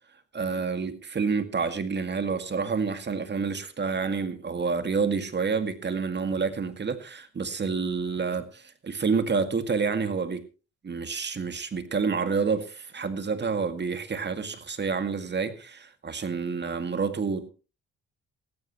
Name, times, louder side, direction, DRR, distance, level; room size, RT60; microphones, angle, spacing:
voice 1, 0.3-10.5 10.8-17.5, right 5 dB, 35° right, 2.1 m, -28 dB
18.5 x 14.5 x 3.1 m
cardioid pair, 90°, 30 cm